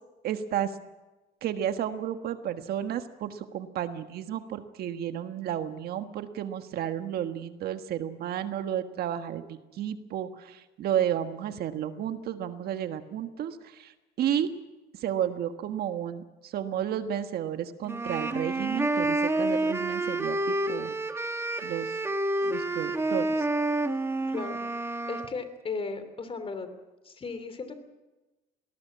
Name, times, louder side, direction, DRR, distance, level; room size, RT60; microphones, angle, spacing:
voice 1, 0.2-0.7 1.4-14.5 15.0-21.0 21.6-21.9 22.4-23.5, right 10 dB, 65° right, 9 dB, 1.5 m, -32 dB
sound 1, 17.9-25.3, right 2 dB, 15° right, 1.7 m, -29 dB
voice 2, 24.3-24.6 25.1-26.7 27.0-27.8, left 4 dB, 35° left, 10 dB, 3.0 m, -36 dB
20.5 x 18.5 x 8.6 m, 1.1 s
cardioid pair, 110°, 17 cm